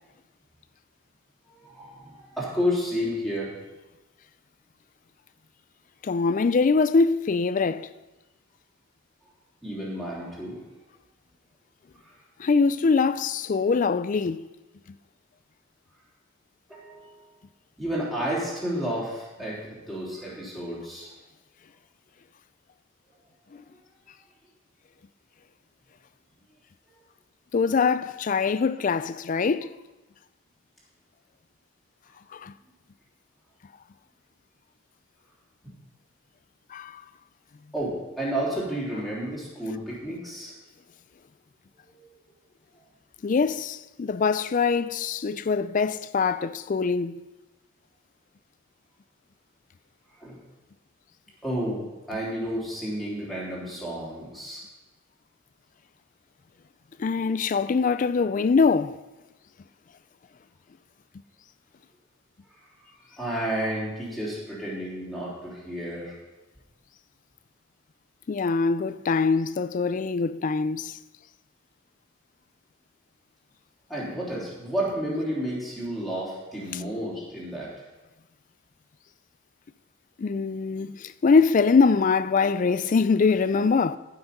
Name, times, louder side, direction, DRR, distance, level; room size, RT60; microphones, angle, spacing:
voice 1, 1.5-3.5 9.6-10.6 12.0-12.2 16.7-17.3 17.8-21.1 35.6-35.7 37.7-40.5 41.7-42.1 50.2-50.4 51.4-54.6 62.8-66.1 73.9-77.8, equal, ahead, 3.3 m, -31 dB
voice 2, 6.0-7.9 12.4-14.5 27.5-29.7 32.3-32.5 36.7-37.0 43.2-47.2 57.0-59.0 68.3-71.0 76.7-76.8 80.2-84.0, left 4 dB, 40° left, 0.3 m, -23 dB
15.0 x 6.0 x 5.4 m
head